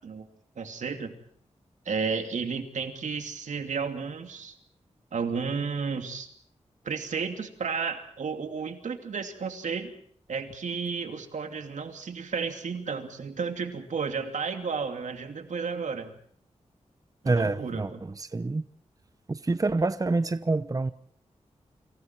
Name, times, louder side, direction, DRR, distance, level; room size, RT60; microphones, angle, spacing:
voice 1, 0.6-1.1 1.8-4.6 5.1-6.3 6.8-9.9 10.3-16.1 17.2-18.0, right 5 dB, 85° right, 2.8 m, -32 dB
voice 2, 17.2-18.6 19.3-20.9, right 3 dB, 30° right, 0.9 m, -27 dB
29.5 x 26.5 x 4.6 m
wide cardioid pair, 80°, 12 cm